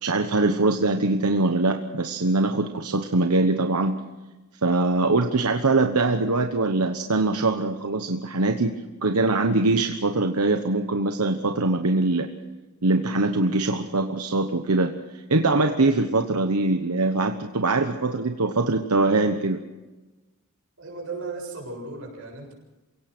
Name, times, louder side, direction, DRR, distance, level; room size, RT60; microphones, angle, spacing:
voice 1, 0.0-4.0 4.6-8.7 9.0-12.3 12.8-19.6, right 2 dB, 90° right, 6 dB, 1.2 m, -23 dB
voice 2, 20.8-22.5, right 3 dB, 60° right, 0 dB, 7.2 m, -36 dB
28.0 x 17.5 x 6.3 m, 1.1 s
head